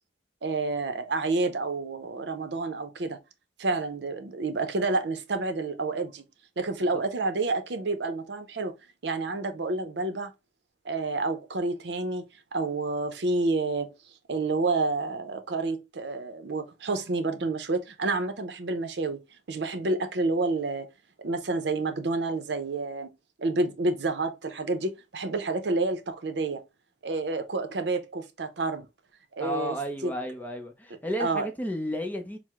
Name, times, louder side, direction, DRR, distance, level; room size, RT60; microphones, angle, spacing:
voice 1, 0.4-3.2 3.6-6.2 6.6-8.7 9.0-10.3 10.8-12.2 12.5-13.9 14.3-19.2 19.5-20.9 21.2-23.1 23.4-26.6 27.0-28.9 29.4-29.7 30.0-30.1 31.2-31.5, right 3 dB, 65° right, 0.6 m, -29 dB
voice 2, 29.4-32.4, equal, 10° left, 0.6 m, -32 dB
4.6 x 2.0 x 3.5 m
head